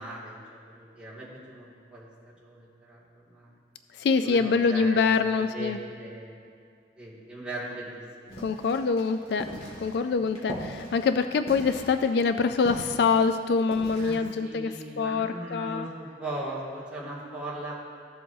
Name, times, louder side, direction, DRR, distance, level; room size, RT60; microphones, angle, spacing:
voice 1, 0.0-2.1 2.4-3.5 4.2-5.0 5.4-6.4 7.0-8.4 10.1-10.4 14.0-17.8, right 1 dB, 5° right, -9 dB, 2.1 m, -39 dB
voice 2, 4.0-5.8 8.4-9.5 9.8-14.7 15.0-15.9, left 5 dB, 60° left, 9 dB, 0.3 m, -25 dB
sound 1, 8.3-14.1, equal, 35° left, 2.0 m, -40 dB
15.0 x 7.5 x 2.7 m, 2.3 s
head